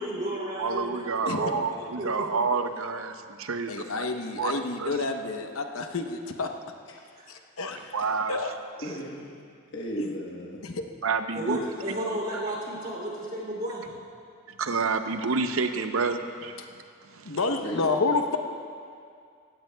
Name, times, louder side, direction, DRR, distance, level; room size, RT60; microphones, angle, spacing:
voice 1, 0.0-2.3 7.2-7.3 11.3-13.9, right 1 dB, 40° right, -3 dB, 3.0 m, -33 dB
voice 2, 0.6-3.9 4.4-5.0 7.9-8.4 11.0-11.6 14.6-16.6 17.1-17.4, right 4 dB, 70° right, 7 dB, 0.7 m, -29 dB
voice 3, 3.7-6.5 7.3-7.8 8.3-8.5 10.0-10.1 10.6-10.8 17.2-18.4, left 3 dB, 70° left, 4 dB, 0.9 m, -29 dB
voice 4, 8.8-9.4 9.7-10.6 17.6-17.9, equal, 55° left, -3 dB, 1.2 m, -35 dB
18.0 x 16.0 x 2.3 m, 2.3 s
head